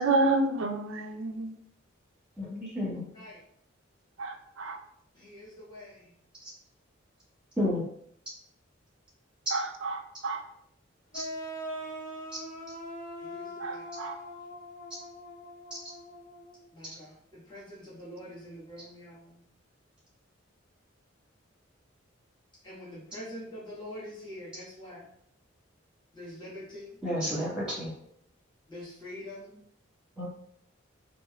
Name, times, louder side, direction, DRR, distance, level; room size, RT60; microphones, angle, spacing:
voice 1, 0.0-1.5 4.2-4.8 9.5-10.4 13.6-14.2, right 2 dB, 75° right, 4 dB, 0.5 m, -29 dB
voice 2, 2.4-3.0 7.6-7.8 11.1-11.2 27.0-27.9 30.2-30.3, left 1 dB, 5° right, -8 dB, 1.5 m, -31 dB
voice 3, 5.1-6.1 13.2-13.9 16.7-19.4 22.6-25.0 26.1-27.0 28.7-29.6, left 1 dB, 25° left, -9 dB, 1.3 m, -45 dB
sound 1, 11.1-16.6, equal, 40° left, 0.7 m, -41 dB
4.2 x 2.7 x 2.3 m, 0.69 s
head